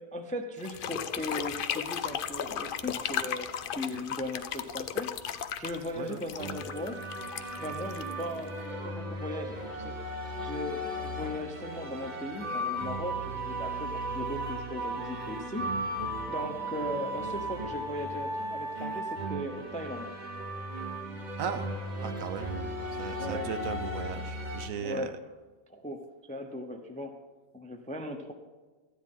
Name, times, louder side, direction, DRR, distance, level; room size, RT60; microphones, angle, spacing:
voice 1, 0.0-3.5 3.7-5.1 5.6-7.0 7.6-10.0 10.4-15.6 16.3-20.1 23.2-23.5 24.8-25.1 25.7-27.2 27.5-28.3, left 1 dB, 10° left, 5 dB, 0.4 m, -38 dB
sound 1, 0.6-8.6, left 8 dB, 90° left, 0.4 m, -36 dB
sound 2, 6.4-24.7, right 1 dB, 35° right, 1.1 m, -36 dB
voice 2, 22.0-22.5 23.0-25.2, right 6 dB, 70° right, 9 dB, 1.1 m, -37 dB
13.5 x 9.8 x 3.7 m, 1.3 s
omnidirectional pair, 1.5 m